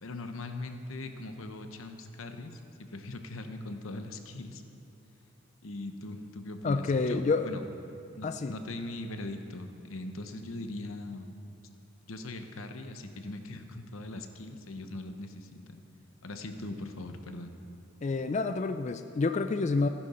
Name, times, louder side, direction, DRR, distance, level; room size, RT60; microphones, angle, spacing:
voice 1, 0.0-4.6 5.6-7.6 8.1-11.3 12.1-15.8 16.2-17.5, left 2 dB, 90° left, 7 dB, 0.9 m, -40 dB
voice 2, 6.6-7.5 8.2-8.5 18.0-19.9, left 3 dB, 35° left, 9 dB, 0.3 m, -28 dB
15.5 x 10.5 x 4.3 m, 3.0 s
head